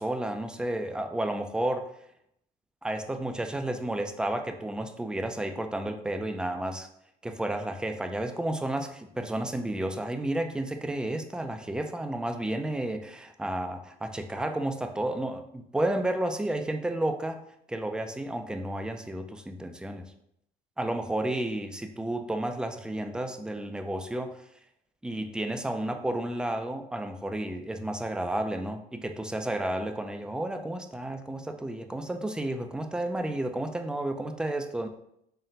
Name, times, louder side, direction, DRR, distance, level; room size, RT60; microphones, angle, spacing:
voice 1, 0.0-1.9 2.8-6.9 7.2-17.4 17.7-20.1 20.8-24.4 25.0-34.9, right 1 dB, 5° right, 6 dB, 0.3 m, -32 dB
4.0 x 2.1 x 3.9 m, 0.76 s
cardioid pair, 110°, 17 cm